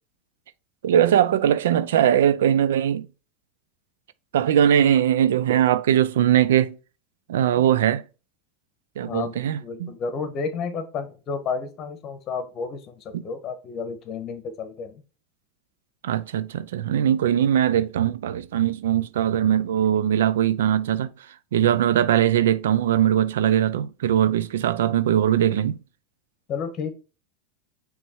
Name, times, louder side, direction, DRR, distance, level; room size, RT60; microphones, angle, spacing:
voice 1, 0.8-3.1 4.3-6.8 7.3-8.0 9.0-9.9 13.1-13.2 16.0-21.1 21.5-25.8, right 10 dB, 90° right, 0.4 m, -20 dB
voice 2, 9.0-14.9 21.6-21.7 26.5-26.9, left 5 dB, 35° left, 1.3 m, -31 dB
6.2 x 3.4 x 4.5 m
supercardioid pair, 125°, 0 cm